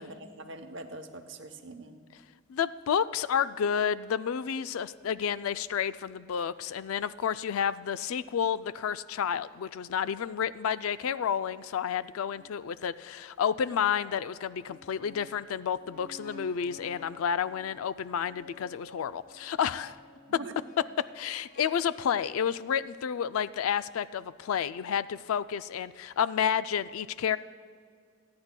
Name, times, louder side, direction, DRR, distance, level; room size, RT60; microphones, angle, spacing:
voice 1, 0.0-2.0 20.3-20.5, right 2 dB, 60° right, 7 dB, 0.8 m, -43 dB
voice 2, 2.5-20.0 21.0-27.4, left 8 dB, 90° left, 15 dB, 0.4 m, -30 dB
sound 1, 13.5-21.7, left 1 dB, 50° left, 1.6 m, -53 dB
27.5 x 9.6 x 2.2 m, 2.2 s
head